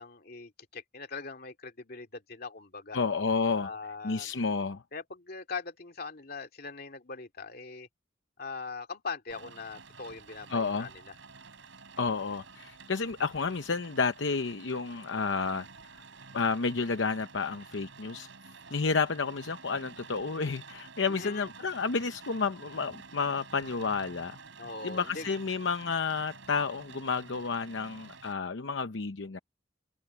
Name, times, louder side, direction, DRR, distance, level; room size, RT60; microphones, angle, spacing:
voice 1, 0.0-3.0 3.6-4.3 4.9-7.9 8.4-11.1 21.1-21.5 24.6-25.4, left 4 dB, 50° left, 2.6 m, -41 dB
voice 2, 2.9-3.7 4.0-4.8 10.5-10.9 12.0-15.7 16.3-18.3 18.7-24.4 24.8-29.4, left 4 dB, 75° left, 0.8 m, -31 dB
Rain, 9.3-28.3, right 4 dB, 85° right, 4.0 m, -50 dB
head